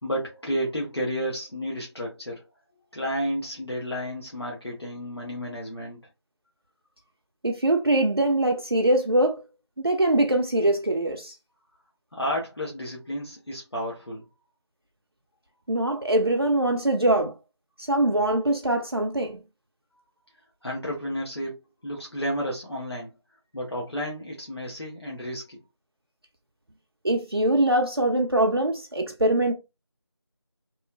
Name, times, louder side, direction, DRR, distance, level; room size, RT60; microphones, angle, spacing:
voice 1, 0.0-2.4 2.9-6.0 12.1-14.2 20.6-23.1 23.5-25.6, equal, 60° left, 1.0 m, -31 dB
voice 2, 7.4-9.4 9.8-11.3 15.7-17.3 17.8-19.4 27.0-29.5, right 1 dB, 55° right, 0.5 m, -23 dB
2.9 x 2.0 x 2.4 m
figure-of-eight pair, 180°, 15 cm